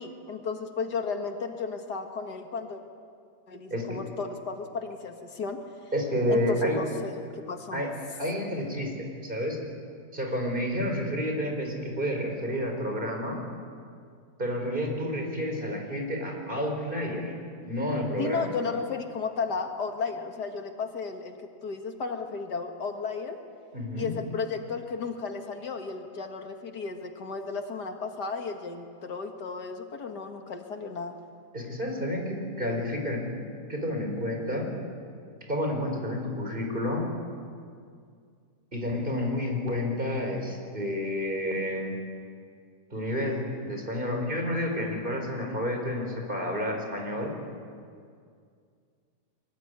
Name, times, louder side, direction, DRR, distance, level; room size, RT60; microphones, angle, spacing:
voice 1, 0.0-2.8 3.5-5.6 6.3-7.8 18.2-21.3 21.6-23.4 24.0-31.2, left 4 dB, 75° left, 5 dB, 2.3 m, -34 dB
voice 2, 5.9-6.8 7.7-7.9 8.2-9.6 10.1-13.4 14.4-17.3 17.6-18.5 23.7-24.1 31.5-33.4 33.7-34.7 35.5-37.1 38.7-42.0 42.9-47.4, left 1 dB, 30° right, 2 dB, 4.9 m, -30 dB
24.0 x 21.0 x 9.7 m, 2.2 s
omnidirectional pair, 1.8 m